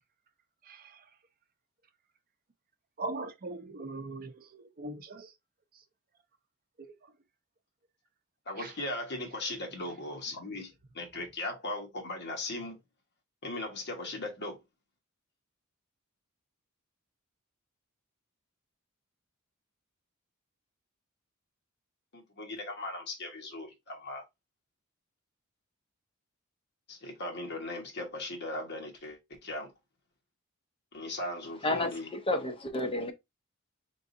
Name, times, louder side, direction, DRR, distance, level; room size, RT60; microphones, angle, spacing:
voice 1, 3.0-5.3 6.8-6.9, right 2 dB, 45° right, 0.6 m, -39 dB
voice 2, 8.5-10.7 10.9-12.8 13.4-14.6 22.1-24.2 26.9-29.7 30.9-32.1, left 2 dB, 50° left, 1.4 m, -38 dB
voice 3, 31.6-33.1, left 2 dB, 25° left, 0.8 m, -31 dB
3.9 x 3.8 x 2.6 m
head